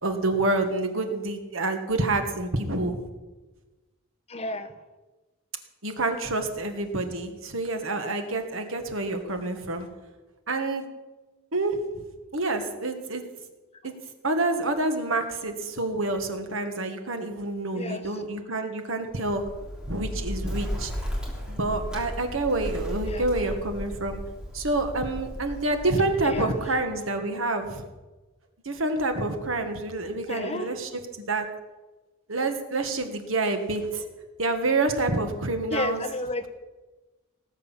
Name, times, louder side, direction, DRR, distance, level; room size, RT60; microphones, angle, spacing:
voice 1, 0.0-3.0 5.8-9.9 10.5-10.9 11.5-11.8 12.3-13.2 13.8-13.9 14.2-19.4 19.9-20.9 21.5-24.2 24.5-27.8 28.7-31.5 32.3-34.1 34.4-36.0, right 2 dB, 70° right, 6 dB, 1.8 m, -28 dB
voice 2, 4.3-4.7 17.7-18.0 23.1-23.2 26.2-26.5 30.3-30.7 35.7-36.5, left 2 dB, 30° left, 10 dB, 1.0 m, -31 dB
Bird, 19.2-27.0, equal, 5° right, 3.3 m, -35 dB
18.5 x 8.2 x 7.5 m, 1.2 s
head